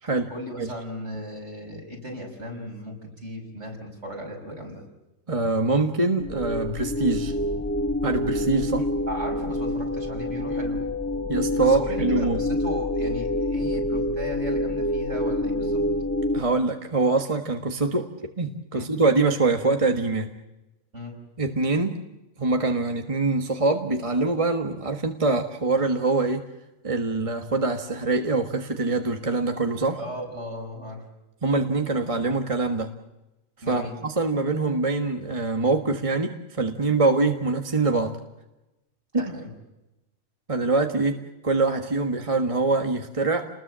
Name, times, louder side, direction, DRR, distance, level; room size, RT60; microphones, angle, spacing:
voice 1, 0.3-4.8 8.8-10.9 11.6-15.8 18.7-18.9 20.9-21.2 30.0-31.0 33.6-34.0 39.2-39.5, equal, 55° right, 1 dB, 6.3 m, -36 dB
voice 2, 5.3-7.3 8.0-8.9 11.3-12.4 16.3-18.1 18.4-20.3 21.4-22.0 22.4-26.4 26.8-30.0 31.4-32.9 33.7-38.2 39.1-39.3 40.5-41.2 41.4-43.5, right 3 dB, 25° right, 5 dB, 1.4 m, -24 dB
sound 1, 6.2-16.4, left 1 dB, 10° left, 1.5 m, -27 dB
30.0 x 20.5 x 7.5 m, 0.98 s
omnidirectional pair, 1.4 m